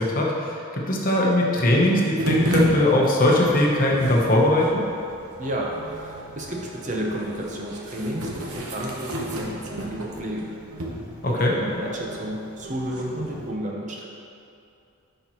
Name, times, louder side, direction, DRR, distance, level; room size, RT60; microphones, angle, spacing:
voice 1, 0.0-4.8 11.2-11.5, left 1 dB, 40° left, -2 dB, 0.9 m, -20 dB
sound 1, 2.2-13.5, right 1 dB, 85° right, 1.0 m, -32 dB
voice 2, 5.4-10.6 11.3-14.1, right 1 dB, 35° right, -2 dB, 0.8 m, -31 dB
10.0 x 5.4 x 3.0 m, 2.5 s
head